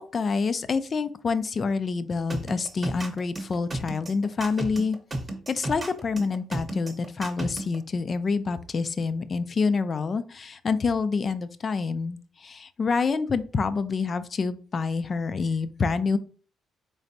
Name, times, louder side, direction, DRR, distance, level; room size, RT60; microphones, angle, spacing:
voice 1, 0.0-5.0 5.5-16.2, left 4 dB, 40° left, 13 dB, 0.3 m, -27 dB
sound 1, 2.3-7.8, right 1 dB, 30° right, 0.8 m, -33 dB
3.9 x 3.3 x 2.7 m, 0.41 s
cardioid pair, 90°, 0 cm